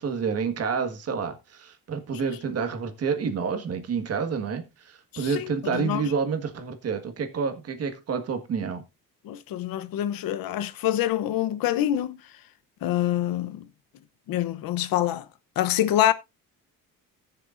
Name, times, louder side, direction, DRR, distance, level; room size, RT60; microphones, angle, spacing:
voice 1, 0.0-8.8, right 5 dB, 45° right, 1.7 m, -29 dB
voice 2, 5.1-6.1 9.2-12.2 12.8-13.7 14.3-15.2 15.6-16.1, left 12 dB, 75° left, 0.9 m, -26 dB
19.5 x 6.6 x 2.6 m
cardioid pair, 170°, 35 cm